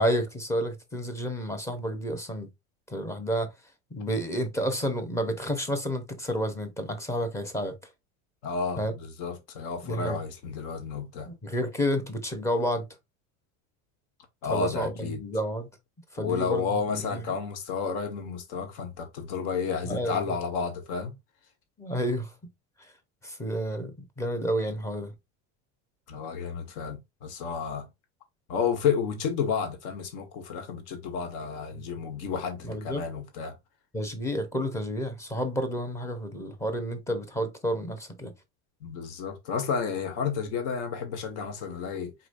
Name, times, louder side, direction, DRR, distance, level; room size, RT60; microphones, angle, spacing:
voice 1, 0.0-2.5 2.9-3.5 3.9-7.7 8.8-8.9 9.8-10.2 11.2-12.9 14.5-15.7 16.1-17.2 19.8-20.2 21.8-22.3 23.2-25.1 31.7-31.8 32.6-33.0 33.9-38.3, equal, 10° left, 0.6 m, -30 dB
voice 2, 8.4-11.3 14.4-15.2 16.2-21.1 26.1-27.9 28.5-33.6 38.8-42.1, left 6 dB, 70° left, 1.5 m, -31 dB
4.9 x 4.4 x 2.5 m
cardioid pair, 180°, 35 cm